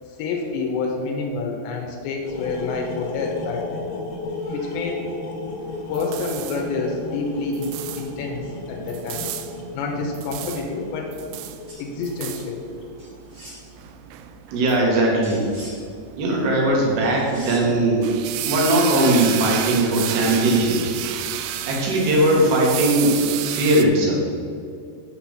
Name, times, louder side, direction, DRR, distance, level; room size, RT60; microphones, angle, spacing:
voice 1, 0.1-3.9 4.5-5.1 5.9-9.3 9.7-11.2 11.8-12.7, left 3 dB, 85° left, 1 dB, 3.1 m, -28 dB
sound 1, 2.3-13.2, left 3 dB, 65° left, 3.3 m, -34 dB
sound 2, 5.6-23.8, right 12 dB, 90° right, 2.9 m, -33 dB
sound 3, 11.7-11.9 13.0-13.6 15.2-15.8 17.0-17.8 18.6-19.4, right 1 dB, 35° right, 1.1 m, -41 dB
voice 2, 14.5-15.4 16.2-20.9 21.7-24.2, right 1 dB, 75° right, -2 dB, 4.0 m, -19 dB
8.2 x 5.8 x 7.3 m, 2.3 s
omnidirectional pair, 5.1 m